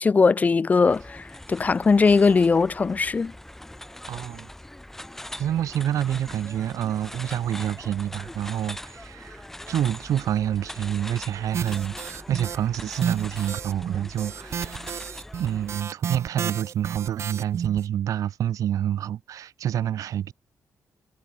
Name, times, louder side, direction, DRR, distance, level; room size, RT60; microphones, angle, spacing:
voice 1, 0.0-3.3, left 4 dB, 25° left, 0.4 m, -20 dB
sound 1, 0.8-15.8, left 1 dB, 5° left, 0.9 m, -41 dB
voice 2, 4.1-4.5 5.4-14.9 15.4-20.3, right 10 dB, 75° right, 0.7 m, -28 dB
sound 2, 11.5-12.6 12.9-17.8, right 7 dB, 55° right, 1.1 m, -32 dB
cardioid pair, 135°, 6 cm